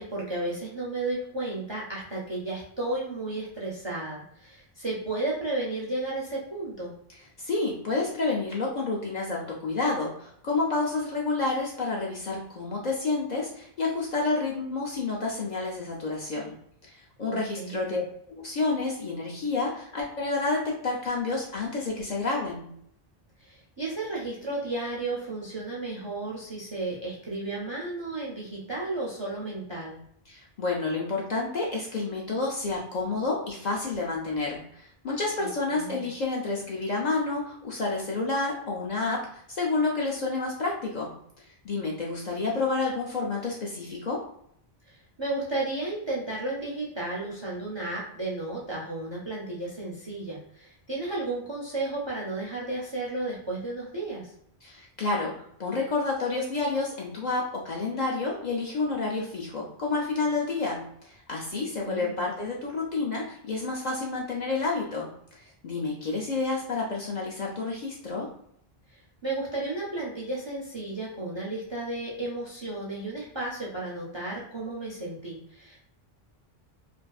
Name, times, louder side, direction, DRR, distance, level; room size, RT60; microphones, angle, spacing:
voice 1, 0.0-6.9 17.3-18.0 23.4-30.0 35.4-36.1 44.8-54.3 61.5-62.2 68.9-75.8, right 2 dB, 40° right, -4 dB, 0.4 m, -33 dB
voice 2, 7.4-16.6 16.8-18.0 18.3-22.7 30.3-41.1 41.4-44.2 54.6-55.3 55.6-65.1 65.4-68.3, left 3 dB, 55° left, -3 dB, 0.5 m, -29 dB
2.4 x 2.4 x 2.3 m, 0.70 s
omnidirectional pair, 1.0 m